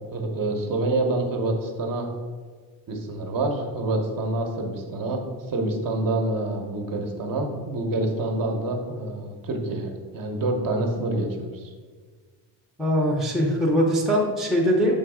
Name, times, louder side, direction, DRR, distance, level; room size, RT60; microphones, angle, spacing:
voice 1, 0.1-2.1 2.9-5.2 5.5-11.7, right 2 dB, 45° right, 3 dB, 0.8 m, -27 dB
voice 2, 12.8-15.0, equal, ahead, -4 dB, 0.6 m, -21 dB
6.9 x 3.0 x 4.7 m, 1.5 s
cardioid pair, 165°, 49 cm